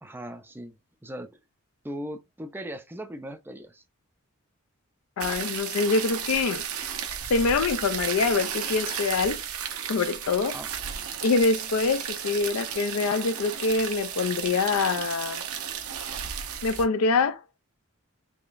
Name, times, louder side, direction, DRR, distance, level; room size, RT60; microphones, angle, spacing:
voice 1, 0.0-1.4 1.8-3.8 10.4-10.7, equal, 10° right, 0.4 m, -39 dB
voice 2, 5.2-6.7 7.3-9.4 9.9-10.6 11.2-15.4 16.6-17.4, left 4 dB, 75° left, 0.4 m, -25 dB
sound 1, 5.2-16.8, right 8 dB, 80° right, 0.7 m, -34 dB
3.7 x 3.2 x 2.5 m
head